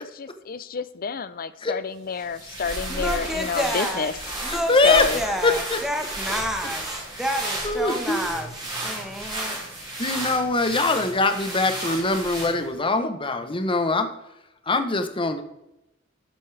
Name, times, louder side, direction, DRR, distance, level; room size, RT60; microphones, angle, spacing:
voice 1, 0.0-4.1 4.8-5.2, left 5 dB, 45° left, 15 dB, 0.6 m, -29 dB
sound 1, 2.2-12.8, right 1 dB, 25° right, 3.5 m, -33 dB
voice 2, 2.9-4.1 4.4-8.5 8.8-9.6, equal, ahead, 4 dB, 1.2 m, -29 dB
voice 3, 4.4-5.8 7.6-8.2 9.2-9.6 10.0-14.1 14.7-15.4, left 3 dB, 25° left, 8 dB, 0.9 m, -23 dB
12.5 x 8.3 x 3.4 m, 0.89 s
head